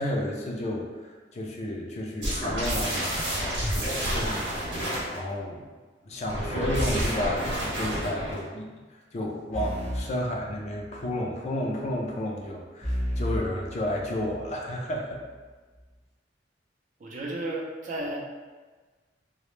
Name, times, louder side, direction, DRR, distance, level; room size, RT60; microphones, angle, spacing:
voice 1, 0.0-4.8 5.1-5.6 6.0-15.2, left 1 dB, 40° left, -1 dB, 0.3 m, -32 dB
sound 1, 2.2-5.2 6.2-8.5, equal, 75° right, 0.8 m, -29 dB
sound 2, 9.5-11.1 12.8-14.6, equal, 30° right, 0.9 m, -33 dB
voice 2, 17.0-18.2, right 1 dB, 45° right, -2 dB, 0.4 m, -33 dB
2.0 x 2.0 x 3.0 m, 1.4 s
head